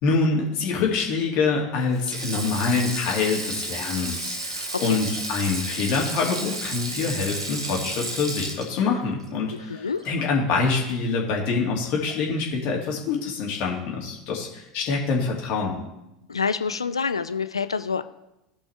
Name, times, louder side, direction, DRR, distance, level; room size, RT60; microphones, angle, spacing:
voice 1, 0.0-15.8, left 4 dB, 50° left, -1 dB, 2.5 m, -25 dB
Sink (filling or washing), 1.9-10.4 10.7-10.9 12.1-12.3, right 2 dB, 85° right, 1.3 m, -33 dB
voice 2, 9.5-10.0 16.3-18.0, left 5 dB, 90° left, 12 dB, 0.4 m, -27 dB
15.5 x 5.4 x 3.4 m, 0.92 s
figure-of-eight pair, 80°, 3 cm